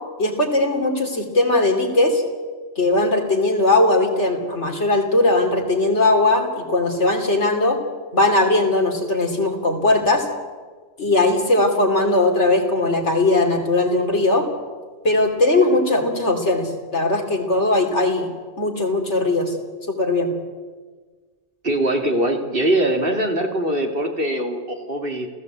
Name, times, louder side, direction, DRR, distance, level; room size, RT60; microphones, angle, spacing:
voice 1, 0.2-2.2 2.8-7.8 8.1-10.2 11.0-14.4 15.0-18.3 18.6-19.5 20.0-20.3, left 2 dB, 75° left, 3 dB, 3.5 m, -19 dB
voice 2, 21.6-25.3, right 1 dB, 55° right, 3 dB, 3.0 m, -22 dB
29.5 x 15.5 x 8.2 m, 1.4 s
omnidirectional pair, 1.2 m